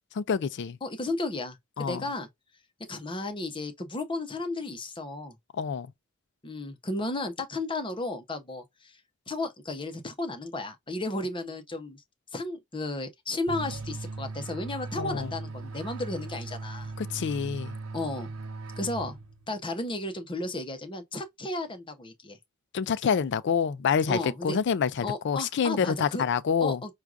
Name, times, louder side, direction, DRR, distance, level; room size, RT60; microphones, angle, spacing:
voice 1, 0.1-0.8 1.8-2.0 5.5-5.9 15.0-15.3 17.0-17.8 22.7-26.8, left 6 dB, 60° left, 0.4 m, -27 dB
voice 2, 0.8-2.3 2.9-5.4 6.4-9.0 9.3-12.0 12.3-16.9 17.9-18.3 18.8-19.2 19.5-22.4 24.1-24.6 25.0-26.2 26.6-26.9, left 2 dB, 25° left, 0.8 m, -34 dB
sound 1, 13.5-19.6, right 3 dB, 90° right, 0.7 m, -38 dB
4.5 x 2.3 x 2.4 m
head